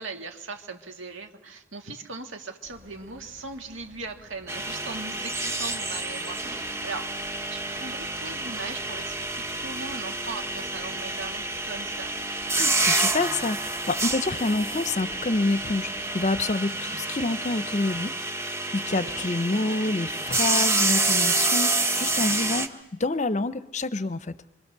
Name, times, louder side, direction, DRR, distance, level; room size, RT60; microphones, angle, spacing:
voice 1, 0.0-7.1 7.5-12.1 18.9-19.3 22.1-22.4, right 3 dB, 65° right, 4 dB, 2.0 m, -39 dB
sound 1, 2.6-16.5, equal, 45° right, 1.9 m, -52 dB
sound 2, 4.5-22.7, right 2 dB, 15° right, 1.1 m, -28 dB
voice 2, 12.6-18.1 18.7-22.7 23.0-24.4, left 2 dB, 35° left, 14 dB, 0.8 m, -27 dB
25.5 x 25.0 x 6.8 m, 0.98 s
head